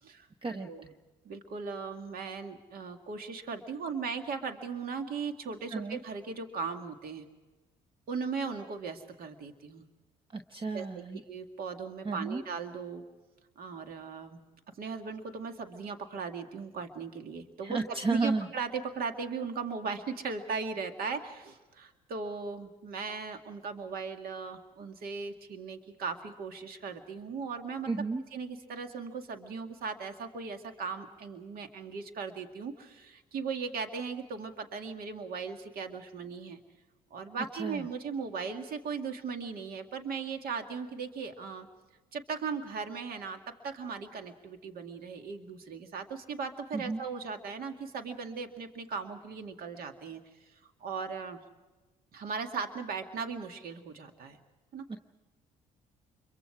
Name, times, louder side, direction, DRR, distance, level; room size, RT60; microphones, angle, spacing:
voice 1, 1.3-7.3 8.1-9.8 10.7-13.0 13.6-14.4 14.8-27.9 28.3-36.6 37.1-41.7 42.1-50.2 50.8-51.4 52.1-54.4 54.7-54.8, right 5 dB, 65° right, 6 dB, 2.1 m, -38 dB
voice 2, 10.3-11.2 12.0-12.4 17.6-18.5 27.9-28.2 37.6-37.9 46.7-47.0 54.9-55.0, right 3 dB, 30° right, 6 dB, 1.2 m, -32 dB
28.0 x 23.5 x 4.8 m, 1.2 s
supercardioid pair, 70°, 17 cm